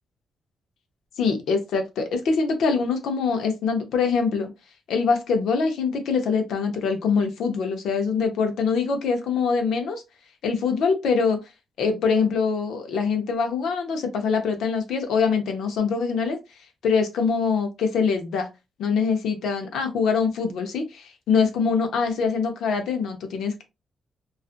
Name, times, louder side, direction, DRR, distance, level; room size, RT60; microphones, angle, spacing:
voice 1, 1.2-4.5 4.9-10.0 10.4-11.4 11.8-16.4 16.8-18.5 18.8-23.6, left 5 dB, 85° left, 0.6 m, -24 dB
2.5 x 2.4 x 2.4 m
cardioid pair, 115°, 0 cm